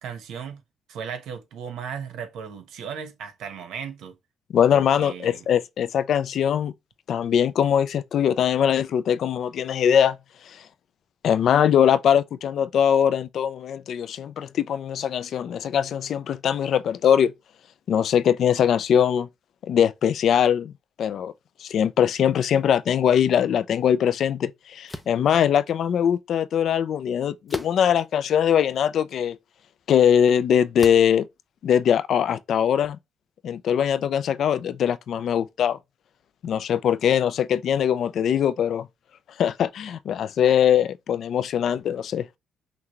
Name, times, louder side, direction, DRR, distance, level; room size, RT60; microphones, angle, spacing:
voice 1, 0.0-0.6 0.9-4.2 4.7-5.4, right 7 dB, 80° right, 1.1 m, -36 dB
voice 2, 4.5-6.7 7.1-10.2 10.5-10.6 11.2-17.3 17.9-19.3 19.6-20.7 21.0-21.3 21.6-29.4 29.9-31.3 31.6-33.0 33.4-35.8 36.4-38.9 39.4-42.3, left 9 dB, 65° left, 0.4 m, -21 dB
sound 1, 24.9-25.2 27.5-28.0 28.7-28.8 30.8-31.2, equal, ahead, 0.6 m, -37 dB
5.9 x 2.2 x 2.9 m
cardioid pair, 90°, 0 cm